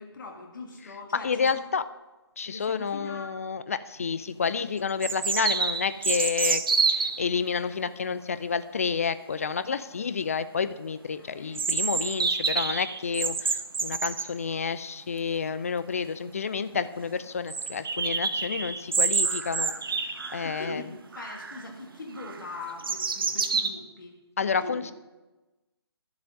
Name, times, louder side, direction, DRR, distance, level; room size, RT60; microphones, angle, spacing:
voice 1, 0.0-1.6 2.4-3.3 11.2-11.6 20.4-24.1 24.4-24.9, left 3 dB, 50° left, 1 dB, 2.1 m, -41 dB
voice 2, 1.2-1.8 2.4-6.6 6.9-19.7 20.3-20.8 24.4-24.9, left 6 dB, 30° left, 14 dB, 0.3 m, -30 dB
sound 1, 4.0-4.1 5.0-7.2 11.6-14.3 15.9-16.0 16.3-16.4 16.7-16.8 17.5-20.7 21.1-21.6 22.2-23.7, right 5 dB, 55° right, 0.8 m, -28 dB
12.0 x 7.3 x 5.2 m, 1.1 s
figure-of-eight pair, 145°, 14 cm